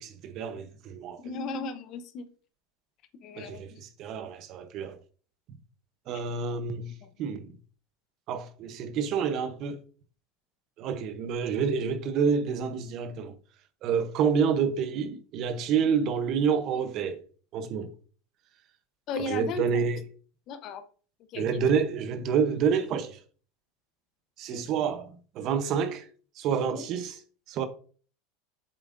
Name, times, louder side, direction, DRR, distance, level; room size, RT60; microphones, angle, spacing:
voice 1, 0.0-1.3 3.4-5.0 6.1-7.6 8.3-9.8 10.8-13.3 13.8-17.2 17.5-17.9 19.2-20.0 21.3-23.2 24.4-26.1 26.3-27.2 27.5-27.7, right 6 dB, 35° right, 0.8 m, -28 dB
voice 2, 1.2-2.3 3.2-3.8 19.1-19.6 20.5-20.8 21.3-21.4 24.5-24.6 26.6-26.8, left 4 dB, 35° left, 0.8 m, -35 dB
7.9 x 7.0 x 2.6 m
supercardioid pair, 165°, 0 cm